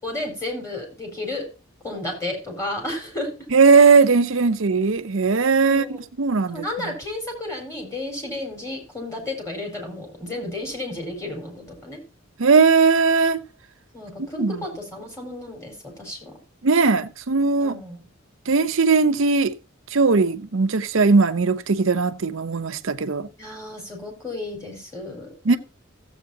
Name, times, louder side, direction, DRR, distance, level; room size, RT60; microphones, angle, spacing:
voice 1, 0.0-1.5 1.8-3.3 5.7-6.0 6.5-12.0 13.9-16.3 17.6-18.1 23.4-25.6, left 2 dB, 15° left, 4.2 m, -32 dB
voice 2, 3.5-6.9 12.4-13.4 14.2-14.6 16.6-17.8 18.5-19.5 19.9-23.3 25.4-25.6, right 4 dB, 70° right, 0.7 m, -19 dB
15.5 x 8.0 x 2.7 m
head